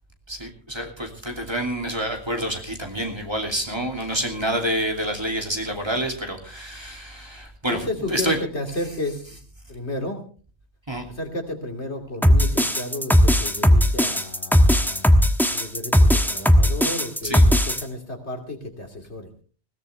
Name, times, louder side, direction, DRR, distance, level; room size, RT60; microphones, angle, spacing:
voice 1, 0.3-8.4 10.9-11.0 17.2-17.4, right 1 dB, 25° right, 2 dB, 2.9 m, -28 dB
voice 2, 7.7-9.4 9.7-10.2 11.1-15.1 15.5-19.3, left 1 dB, 80° left, 5 dB, 3.1 m, -32 dB
sound 1, 12.2-17.8, equal, ahead, 1.2 m, -17 dB
21.0 x 17.0 x 3.4 m, 0.40 s
omnidirectional pair, 1.1 m